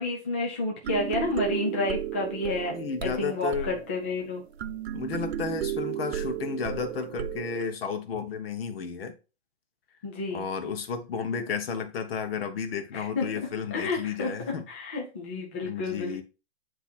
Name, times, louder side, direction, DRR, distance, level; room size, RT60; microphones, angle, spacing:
voice 1, 0.0-2.8 3.0-4.4 10.0-10.4 12.9-13.3 13.7-16.2, left 2 dB, 10° left, 0.3 m, -30 dB
sound 1, 0.8-7.7, right 10 dB, 70° right, 0.6 m, -34 dB
voice 2, 2.7-3.7 4.9-9.1 10.3-14.7 15.6-16.2, left 6 dB, 55° left, 1.2 m, -32 dB
8.0 x 3.0 x 4.2 m
hypercardioid pair, 150°, 34 cm